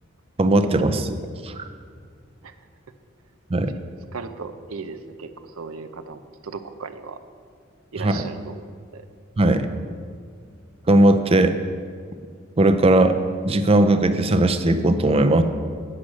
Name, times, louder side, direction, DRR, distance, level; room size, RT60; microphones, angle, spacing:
voice 1, 0.4-1.2 1.4-1.5 3.5-3.7 8.0-8.2 9.4-9.7 10.9-11.5 12.6-13.2 13.4-15.4, right 1 dB, 30° right, 9 dB, 0.5 m, -18 dB
voice 2, 4.1-5.3 5.6-7.2 7.9-8.7 8.9-9.0, right 4 dB, 85° right, 10 dB, 0.6 m, -36 dB
9.9 x 6.3 x 6.3 m, 2.1 s
head